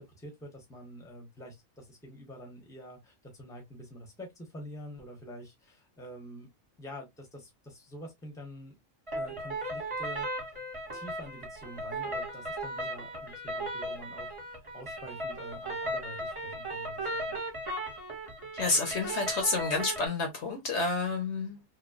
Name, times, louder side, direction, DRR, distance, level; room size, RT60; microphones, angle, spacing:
voice 1, 0.0-6.5 6.8-8.7 9.1-10.5 10.9-17.4, equal, 5° left, 0.9 m, -47 dB
sound 1, 9.1-20.1, right 1 dB, 25° right, 1.1 m, -36 dB
voice 2, 18.5-21.6, left 3 dB, 60° left, 1.0 m, -29 dB
3.1 x 2.3 x 2.3 m
omnidirectional pair, 1.4 m